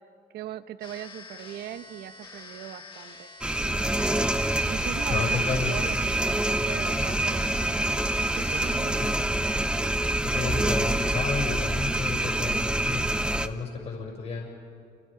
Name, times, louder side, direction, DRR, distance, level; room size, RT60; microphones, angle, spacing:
voice 1, 0.3-3.3 3.6-4.0 4.7-8.0 8.3-9.1, right 12 dB, 75° right, 11 dB, 1.1 m, -40 dB
sound 1, 0.8-8.8, left 3 dB, 30° left, 4.3 m, -46 dB
sound 2, 3.4-13.5, right 1 dB, 5° right, 1.0 m, -26 dB
voice 2, 5.1-5.7 6.7-6.8 9.0-9.2 10.2-13.0 13.3-14.5, left 4 dB, 45° left, -2 dB, 6.4 m, -32 dB
29.0 x 28.5 x 5.2 m, 2.3 s
cardioid pair, 110°, 17 cm